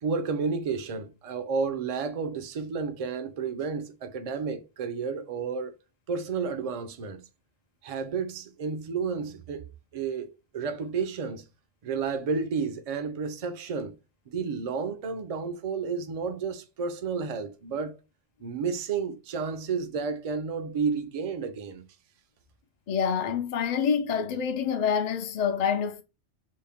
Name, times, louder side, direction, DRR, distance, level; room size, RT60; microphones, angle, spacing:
voice 1, 0.0-5.8 6.1-7.3 7.8-11.5 11.8-14.0 14.3-18.0 18.4-21.9, right 5 dB, 50° right, 0.4 m, -31 dB
voice 2, 22.9-26.0, left 7 dB, 55° left, 0.5 m, -27 dB
4.1 x 2.1 x 3.5 m
omnidirectional pair, 1.2 m